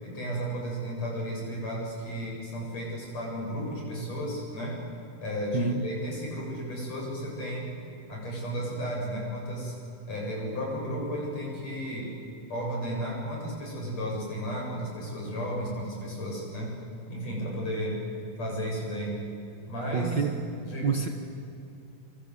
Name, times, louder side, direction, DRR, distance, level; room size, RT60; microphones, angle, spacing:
voice 1, 0.0-4.8 5.2-7.7 8.1-9.7 10.1-12.2 12.5-16.8 17.1-18.0 18.4-19.2 19.7-20.2 20.6-21.0, equal, 45° left, -2 dB, 9.4 m, -33 dB
voice 2, 5.5-5.9 19.9-20.4 20.8-21.1, right 5 dB, 90° right, 4 dB, 0.9 m, -27 dB
27.5 x 26.0 x 8.3 m, 2.6 s
omnidirectional pair, 4.1 m